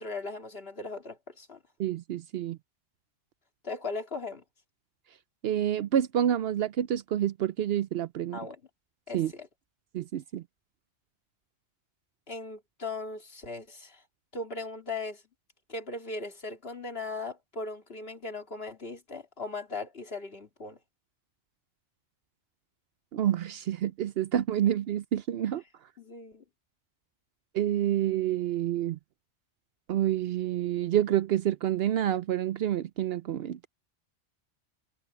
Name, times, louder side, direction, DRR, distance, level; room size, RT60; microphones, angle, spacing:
voice 1, 0.0-1.6 3.6-4.4 8.3-8.6 9.1-9.5 12.3-14.0 14.3-15.2 15.7-20.8 26.0-26.4, left 3 dB, 55° left, 2.7 m, -38 dB
voice 2, 1.8-2.6 5.4-8.4 9.1-9.3 9.9-10.4 23.1-25.6 27.5-29.0 29.9-33.7, right 11 dB, 65° right, 0.7 m, -28 dB
omnidirectional pair, 1.2 m